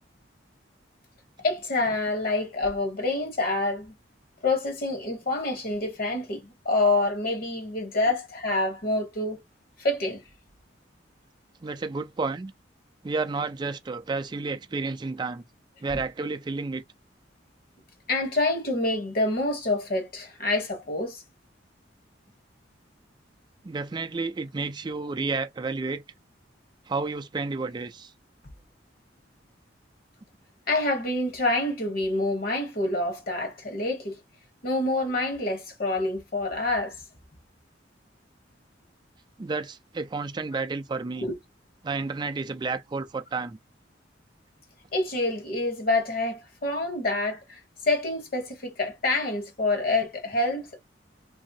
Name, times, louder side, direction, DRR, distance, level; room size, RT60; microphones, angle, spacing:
voice 1, 1.4-3.9 4.4-9.4 9.8-10.2 18.1-21.2 30.7-34.2 34.6-36.9 41.2-41.4 44.9-50.8, left 2 dB, 50° left, 1.1 m, -27 dB
voice 2, 11.6-12.5 13.0-15.4 15.8-16.8 23.6-26.0 26.9-28.1 39.4-41.3 41.8-43.6, right 3 dB, 25° right, 0.3 m, -31 dB
3.0 x 2.6 x 2.6 m
head